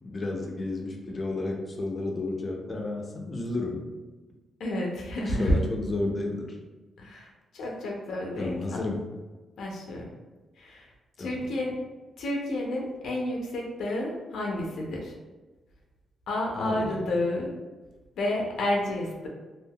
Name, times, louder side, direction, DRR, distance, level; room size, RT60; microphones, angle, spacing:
voice 1, 0.0-3.9 5.3-6.6 8.4-9.1 11.2-11.5 16.5-17.1, left 2 dB, 30° left, 1 dB, 0.5 m, -32 dB
voice 2, 4.6-5.5 7.0-7.3 7.5-8.8 9.6-10.1 10.6-10.9 11.2-11.7 12.2-15.1 16.3-17.5 18.2-19.3, left 1 dB, 80° left, -1 dB, 0.5 m, -30 dB
3.4 x 2.4 x 2.3 m, 1.2 s
wide cardioid pair, 135°, 0 cm